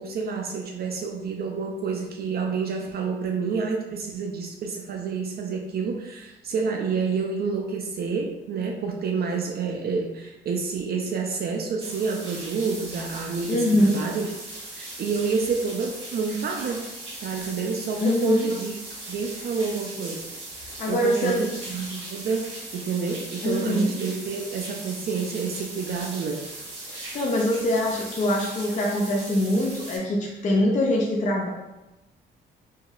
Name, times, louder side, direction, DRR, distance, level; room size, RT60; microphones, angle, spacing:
voice 1, 0.0-14.3 14.7-16.8 17.2-18.8 19.1-20.4 20.9-26.5, right 5 dB, 50° right, 2 dB, 0.4 m, -28 dB
sound 1, 11.8-30.0, right 2 dB, 75° right, 1.2 m, -39 dB
voice 2, 13.5-14.1 18.0-18.5 20.8-21.5 23.4-23.9 27.1-31.5, left 1 dB, 40° left, -2 dB, 0.5 m, -23 dB
2.9 x 2.7 x 2.4 m, 0.97 s
cardioid pair, 90°, 20 cm